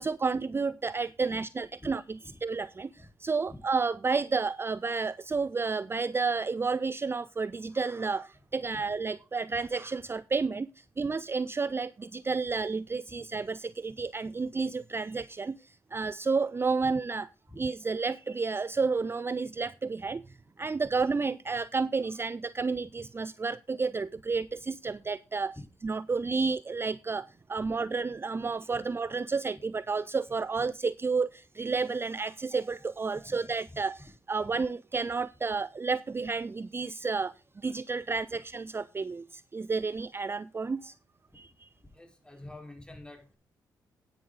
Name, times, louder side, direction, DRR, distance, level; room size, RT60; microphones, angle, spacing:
voice 1, 0.0-2.9 3.2-10.7 11.0-15.6 15.9-17.3 17.6-20.2 20.6-25.5 25.8-37.3 37.6-40.9 41.4-41.5, right 4 dB, 30° right, 0.4 m, -31 dB
voice 2, 41.9-43.4, left 1 dB, 10° left, 4.6 m, -47 dB
10.0 x 9.3 x 3.9 m
supercardioid pair, 55°, 9 cm